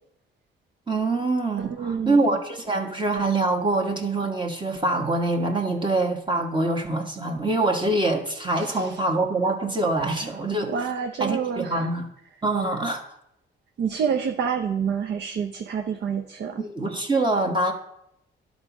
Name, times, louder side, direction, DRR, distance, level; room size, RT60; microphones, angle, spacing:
voice 1, 0.9-10.7 11.2-12.1 12.4-13.0 16.6-17.7, right 2 dB, 25° right, 2 dB, 1.3 m, -24 dB
voice 2, 1.6-2.2 8.6-9.0 10.7-11.9 13.8-16.6, right 7 dB, 60° right, 5 dB, 0.8 m, -28 dB
10.5 x 4.1 x 6.0 m, 0.78 s
cardioid pair, 90°, 20 cm